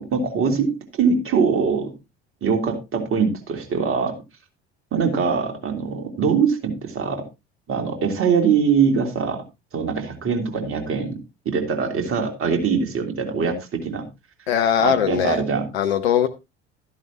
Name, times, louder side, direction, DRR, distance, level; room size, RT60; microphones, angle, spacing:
voice 1, 0.0-1.9 2.4-4.1 4.9-7.2 7.7-9.4 9.7-11.1 11.4-14.1 14.8-15.7, right 6 dB, 40° right, 5 dB, 3.2 m, -22 dB
voice 2, 14.5-15.4 15.7-16.3, left 9 dB, 70° left, 7 dB, 0.9 m, -20 dB
13.5 x 11.0 x 2.9 m, 0.25 s
figure-of-eight pair, 60°, 33 cm